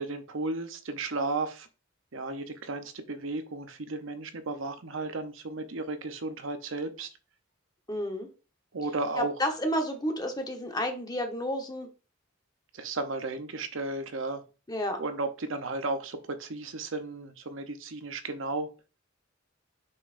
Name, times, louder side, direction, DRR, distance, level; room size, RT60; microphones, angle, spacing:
voice 1, 0.0-1.7 2.1-7.1 8.7-9.3 12.7-14.4 15.0-18.7, right 3 dB, 70° right, 0.8 m, -34 dB
voice 2, 7.9-8.3 9.2-11.9 14.7-15.0, equal, 20° left, 1.1 m, -31 dB
6.6 x 5.6 x 2.6 m
head